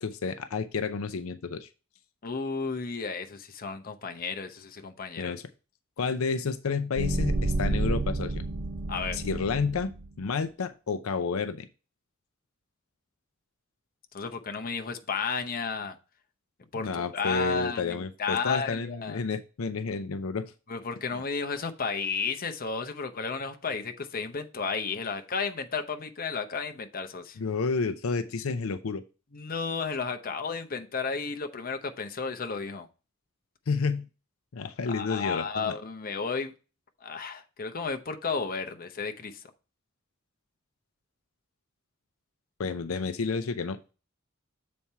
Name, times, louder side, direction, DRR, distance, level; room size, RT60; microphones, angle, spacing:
voice 1, 0.0-1.7 5.2-5.4 6.0-8.4 9.1-9.9 10.2-11.7 16.7-20.5 21.1-21.2 27.4-29.0 33.7-34.1 34.5-35.7 42.6-43.9, left 4 dB, 90° left, 0.6 m, -30 dB
voice 2, 2.2-5.3 8.9-9.2 14.1-16.0 16.7-19.2 20.7-27.4 29.3-32.9 34.9-36.5 37.0-39.4, left 5 dB, 45° left, 0.8 m, -33 dB
sound 1, 6.9-10.1, right 2 dB, 40° right, 0.6 m, -30 dB
7.2 x 4.3 x 4.5 m
head